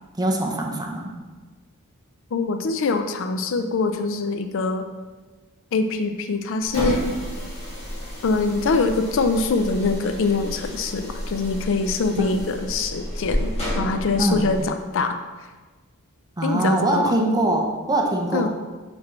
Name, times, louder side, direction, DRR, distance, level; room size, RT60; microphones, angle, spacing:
voice 1, 0.2-1.2 14.2-14.5 16.4-18.5, right 1 dB, 20° right, 1 dB, 0.7 m, -22 dB
voice 2, 2.3-4.9 5.7-7.0 8.2-15.2 16.4-17.2 18.3-18.5, left 3 dB, 60° left, 8 dB, 0.4 m, -24 dB
sound 1, 6.6-14.7, equal, 30° left, 1.8 m, -30 dB
5.8 x 5.8 x 3.2 m, 1.3 s
head